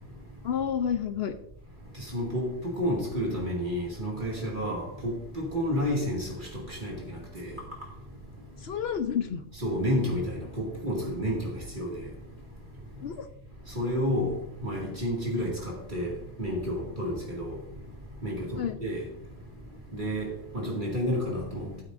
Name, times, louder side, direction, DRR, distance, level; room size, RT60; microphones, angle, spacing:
voice 1, 0.4-1.3 8.6-9.5 13.0-13.3 18.6-18.8, left 8 dB, 70° left, 0.9 m, -30 dB
voice 2, 2.0-7.0 7.3-7.5 9.6-12.1 13.7-14.3 14.6-16.1 16.4-17.6 18.2-19.0 19.9-21.8, equal, 50° right, 2.4 m, -30 dB
14.0 x 8.4 x 2.6 m
omnidirectional pair, 1.1 m